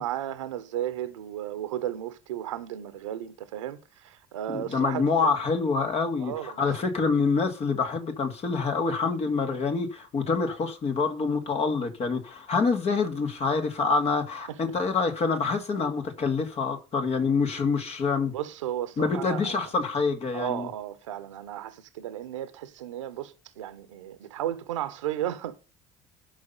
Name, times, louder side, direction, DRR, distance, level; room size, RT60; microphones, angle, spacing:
voice 1, 0.0-5.0 6.2-6.8 14.5-14.6 18.2-19.7 20.3-25.6, right 12 dB, 80° right, 1.3 m, -34 dB
voice 2, 4.5-18.3 19.0-20.7, left 4 dB, 40° left, 2.6 m, -26 dB
12.5 x 5.8 x 5.6 m
figure-of-eight pair, 60°, 16 cm